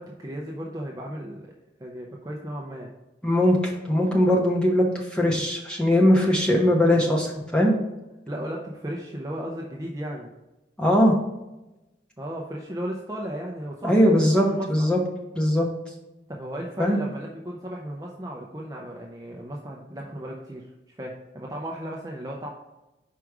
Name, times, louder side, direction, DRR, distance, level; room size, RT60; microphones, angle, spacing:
voice 1, 0.0-1.4 1.8-2.9 5.3-5.5 8.3-10.3 12.2-14.9 16.3-20.7 21.0-22.5, right 1 dB, 20° right, -1 dB, 0.5 m, -35 dB
voice 2, 3.2-3.6 3.8-7.7 10.8-11.2 13.8-15.0 15.3-15.7 16.8-17.0, left 1 dB, 5° left, -2 dB, 1.0 m, -20 dB
5.0 x 4.7 x 4.8 m, 1.0 s
head